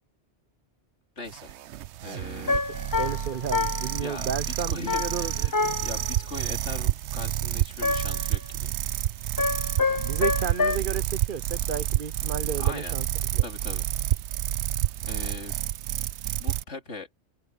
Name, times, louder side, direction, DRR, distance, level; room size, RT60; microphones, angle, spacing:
voice 1, 1.2-1.6 2.0-2.6 4.0-5.5 5.8-8.9 12.6-12.9 13.4-13.9 15.0-15.5 16.4-17.1, left 3 dB, 85° left, 3.1 m, -40 dB
sound 1, 1.3-16.6, right 12 dB, 80° right, 0.9 m, -29 dB
sound 2, 2.5-4.1 4.9-6.1 7.8-8.3 9.4-10.8, left 3 dB, 35° left, 0.3 m, -27 dB
voice 2, 3.0-5.5 9.9-13.1 13.3-13.4, right 7 dB, 55° right, 0.8 m, -32 dB
open air
omnidirectional pair, 1.2 m